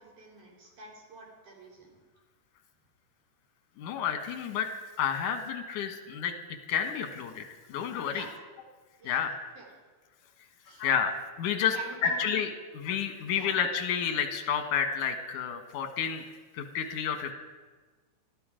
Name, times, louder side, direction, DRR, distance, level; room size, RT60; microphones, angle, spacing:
voice 1, 0.0-1.9 8.1-8.3 9.0-9.2 9.6-9.7 10.7-10.8 11.7-12.2 13.3-13.5, right 2 dB, 85° right, -3 dB, 5.5 m, -47 dB
voice 2, 3.8-4.7 5.0-6.3 6.7-7.4 7.7-8.3 9.0-9.3 10.8-11.1 11.4-11.8 12.0-16.2 16.5-17.3, left 7 dB, 85° left, 7 dB, 2.8 m, -30 dB
20.5 x 13.0 x 5.1 m, 1.3 s
omnidirectional pair, 3.5 m